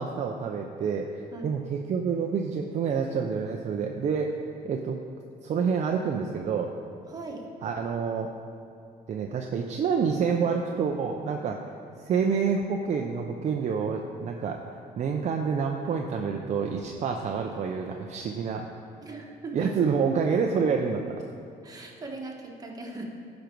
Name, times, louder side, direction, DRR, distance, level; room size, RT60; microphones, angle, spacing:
voice 1, 0.0-4.3 4.6-5.0 5.4-6.7 7.6-8.3 9.1-11.6 12.0-18.7 19.5-21.0, right 6 dB, 45° right, 2 dB, 0.6 m, -28 dB
voice 2, 7.1-7.4 19.0-19.7 21.6-23.0, right 3 dB, 20° right, -1 dB, 1.4 m, -39 dB
12.0 x 5.2 x 4.6 m, 2.6 s
cardioid pair, 110°, 17 cm